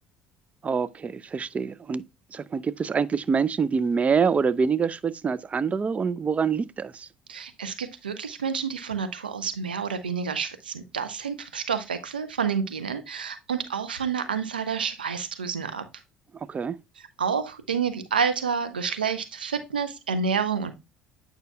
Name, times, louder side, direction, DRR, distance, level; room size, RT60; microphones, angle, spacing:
voice 1, 0.6-2.0 2.3-7.1 16.5-16.8, right 5 dB, 30° right, 0.5 m, -25 dB
voice 2, 7.3-15.8 17.2-20.7, right 6 dB, 90° right, 0.8 m, -29 dB
9.2 x 5.7 x 2.2 m
hypercardioid pair, 60°, 5 cm